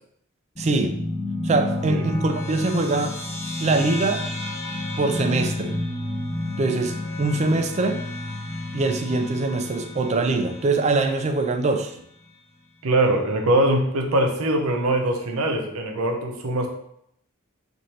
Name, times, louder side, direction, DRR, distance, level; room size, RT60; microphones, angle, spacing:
sound 1, 0.5-11.3, left 2 dB, 10° left, 0.9 m, -31 dB
voice 1, 0.6-1.0 1.4-3.2 3.6-4.3 5.0-5.8 6.6-8.0 8.7-12.0, right 3 dB, 30° right, 6 dB, 0.3 m, -23 dB
voice 2, 12.8-16.7, right 1 dB, 80° right, 2 dB, 0.6 m, -22 dB
3.1 x 2.5 x 4.2 m, 0.72 s
head